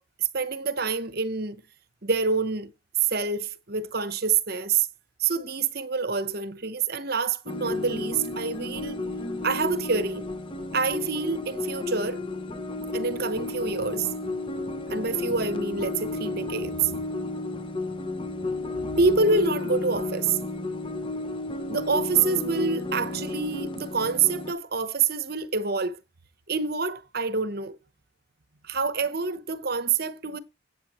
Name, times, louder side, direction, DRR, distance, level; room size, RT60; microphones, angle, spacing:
voice 1, 0.0-1.6 2.0-2.7 3.0-4.9 5.2-9.0 9.4-10.3 10.7-12.2 12.9-14.1 14.9-16.9 19.0-20.4 21.7-26.0 26.5-27.8 28.6-30.4, right 4 dB, 50° right, 1.0 m, -27 dB
sound 1, 7.5-24.5, left 3 dB, 25° left, 0.9 m, -32 dB
14.0 x 8.3 x 3.1 m
head